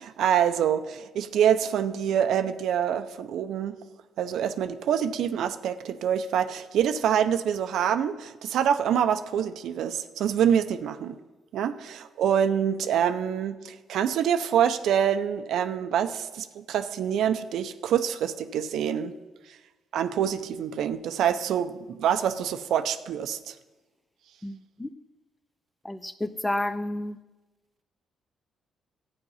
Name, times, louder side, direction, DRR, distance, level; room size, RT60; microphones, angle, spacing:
voice 1, 0.0-3.8 4.2-11.2 11.5-19.1 19.9-23.5, right 9 dB, 75° right, 10 dB, 0.7 m, -26 dB
voice 2, 24.4-24.9 25.8-27.2, left 1 dB, 10° left, 12 dB, 0.6 m, -31 dB
12.5 x 8.9 x 5.6 m, 1.1 s
cardioid pair, 90°, 0 cm